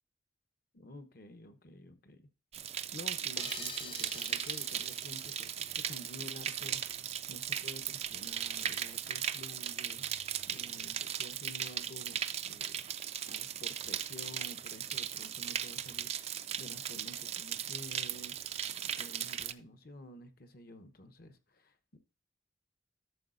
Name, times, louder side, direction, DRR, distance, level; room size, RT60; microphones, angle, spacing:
voice 1, 0.7-2.3 2.9-6.8 7.3-16.1 16.6-18.4 18.8-22.0, left 1 dB, 50° left, 0.9 m, -51 dB
sound 1, 2.5-19.5, right 9 dB, 35° right, 0.4 m, -37 dB
sound 2, 3.4-6.7, left 6 dB, 25° left, 0.4 m, -49 dB
12.0 x 7.0 x 2.5 m
head